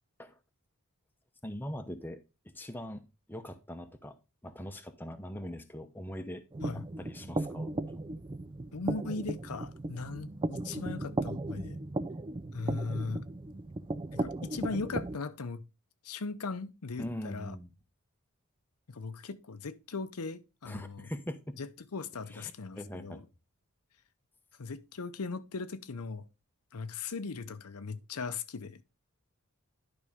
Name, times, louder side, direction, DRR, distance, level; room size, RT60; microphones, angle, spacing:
voice 1, 1.4-2.2 2.5-4.1 4.4-6.4 6.7-8.1 17.0-17.7 20.6-21.4 22.3-23.2, equal, 10° left, 0.8 m, -42 dB
sound 1, 6.5-15.2, right 2 dB, 20° right, 0.4 m, -36 dB
voice 2, 8.7-11.8 12.5-13.2 14.1-15.6 16.0-17.6 18.9-21.1 21.6-23.2 24.6-26.2 26.7-28.8, left 4 dB, 80° left, 0.7 m, -38 dB
11.0 x 5.2 x 3.6 m
head